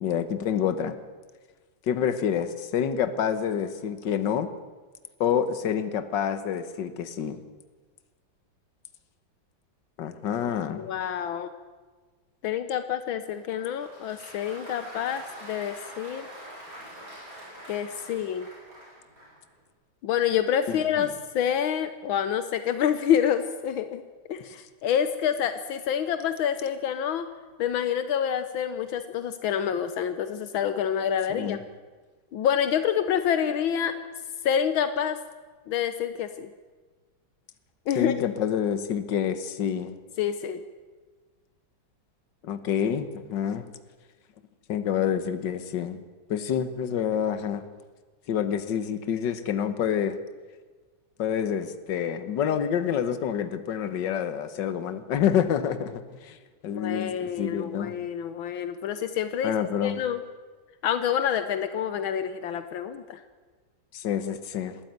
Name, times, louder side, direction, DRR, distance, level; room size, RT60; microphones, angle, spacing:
voice 1, 0.0-1.0 1.9-4.5 5.2-7.4 10.0-10.9 20.7-21.1 31.3-31.6 38.0-39.9 42.4-43.6 44.7-46.0 46.3-47.6 48.3-50.2 51.2-56.4 56.6-58.0 59.4-60.0 63.9-64.8, left 8 dB, 65° left, 11 dB, 1.8 m, -27 dB
voice 2, 10.8-11.5 12.4-16.3 17.7-18.5 20.0-24.0 24.3-27.3 27.6-31.6 32.3-33.9 34.4-35.2 35.7-36.5 37.9-38.1 40.2-40.6 56.7-59.5 59.8-60.2 60.8-63.2, left 9 dB, 80° left, 10 dB, 1.7 m, -27 dB
Applause, 13.3-19.5, right 1 dB, 45° right, 7.6 m, -45 dB
20.5 x 14.0 x 9.4 m, 1.4 s
omnidirectional pair, 2.2 m